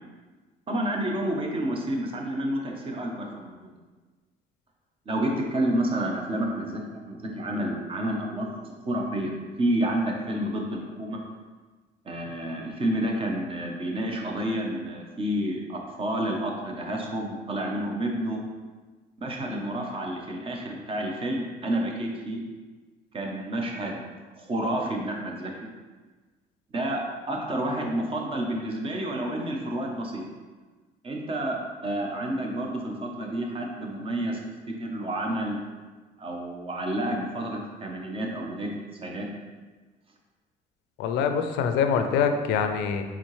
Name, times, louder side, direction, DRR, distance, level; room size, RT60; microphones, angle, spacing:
voice 1, 0.7-3.8 5.1-11.2 12.0-18.4 19.2-22.4 23.1-24.0 24.3-25.5 26.7-30.2 31.0-34.4 34.8-35.6 36.2-38.7 39.0-39.3, right 1 dB, 35° right, 1 dB, 0.8 m, -29 dB
voice 2, 41.0-43.0, left 6 dB, 90° left, 7 dB, 0.4 m, -24 dB
4.2 x 3.7 x 3.1 m, 1.3 s
cardioid pair, 110°, 17 cm